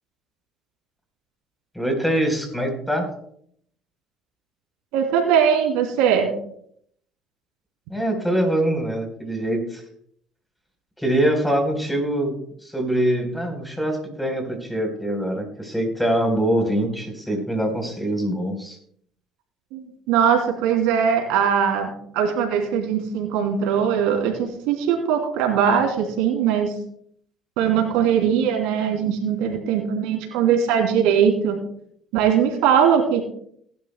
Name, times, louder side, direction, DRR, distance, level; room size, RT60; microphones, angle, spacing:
voice 1, 1.7-3.1 7.9-9.8 11.0-12.4 12.6-18.8, right 1 dB, 5° left, 3 dB, 4.1 m, -23 dB
voice 2, 4.9-6.3 19.7-21.9 22.1-26.7 27.6-31.6 32.1-33.2, right 8 dB, 90° right, 2 dB, 2.9 m, -20 dB
19.5 x 11.5 x 2.2 m, 0.66 s
supercardioid pair, 95°, 0 cm